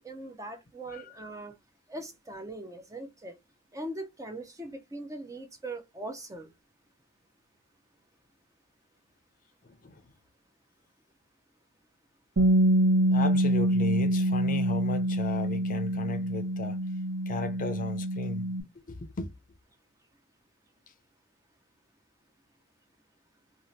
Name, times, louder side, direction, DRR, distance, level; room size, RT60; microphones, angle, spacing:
voice 1, 0.0-1.5 1.9-3.3 3.7-6.5, right 1 dB, 15° right, 0.5 m, -40 dB
voice 2, 9.6-10.1 13.1-16.8 17.3-19.3, left 3 dB, 40° left, 0.5 m, -36 dB
Bass guitar, 12.4-18.6, right 1 dB, 65° right, 0.9 m, -26 dB
2.7 x 2.4 x 3.0 m
head